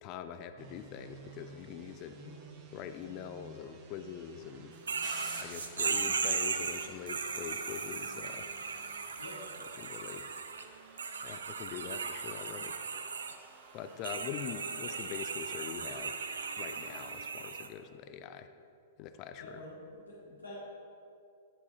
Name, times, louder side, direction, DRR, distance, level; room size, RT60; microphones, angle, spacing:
voice 1, 0.0-2.2 2.7-4.7 5.4-8.5 9.8-10.3 11.2-12.8 13.7-16.2 16.6-18.5 19.0-19.6, left 8 dB, 35° left, 9 dB, 0.5 m, -43 dB
sound 1, 0.6-17.3, right 5 dB, 35° right, 0.8 m, -55 dB
sound 2, 4.9-10.6 11.0-13.3 14.0-17.7, right 5 dB, 70° right, 0.4 m, -37 dB
sound 3, 5.0-10.1, left 1 dB, 5° left, 1.9 m, -53 dB
voice 2, 19.4-20.5, left 2 dB, 85° left, -10 dB, 1.8 m, -48 dB
10.0 x 6.9 x 2.8 m, 2.6 s
figure-of-eight pair, 105°, 0 cm